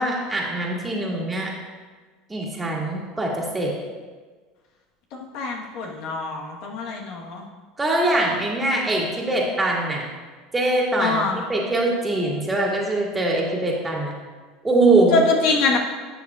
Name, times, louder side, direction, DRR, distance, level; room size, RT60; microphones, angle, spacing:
voice 1, 0.0-1.5 2.3-3.8 7.8-10.0 10.5-14.1 14.6-15.2, right 2 dB, 15° right, -2 dB, 2.1 m, -22 dB
voice 2, 5.1-7.4 11.0-11.4 15.1-15.8, left 3 dB, 65° left, 0 dB, 1.2 m, -24 dB
11.5 x 6.8 x 2.4 m, 1.4 s
hypercardioid pair, 95°, 0 cm